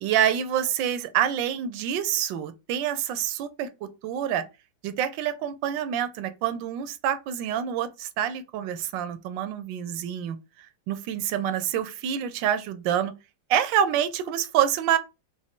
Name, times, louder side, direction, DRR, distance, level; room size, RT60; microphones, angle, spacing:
voice 1, 0.0-4.5 4.8-10.4 10.9-13.1 13.5-15.0, right 10 dB, 75° right, 1.2 m, -27 dB
4.7 x 2.3 x 3.6 m
omnidirectional pair, 2.2 m